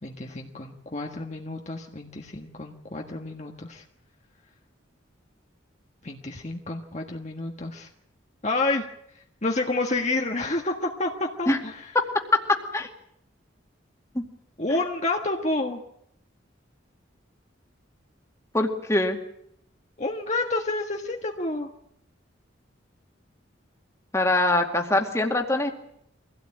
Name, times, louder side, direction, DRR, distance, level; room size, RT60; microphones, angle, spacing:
voice 1, 0.0-3.8 6.0-7.9 8.4-8.9 9.1-11.9 14.6-15.8 20.0-21.7, left 2 dB, 35° left, 2 dB, 1.6 m, -29 dB
voice 2, 12.3-12.9 14.1-14.2 18.5-19.2 24.1-25.7, left 2 dB, 15° left, 3 dB, 2.3 m, -23 dB
25.0 x 16.5 x 8.9 m, 0.76 s
head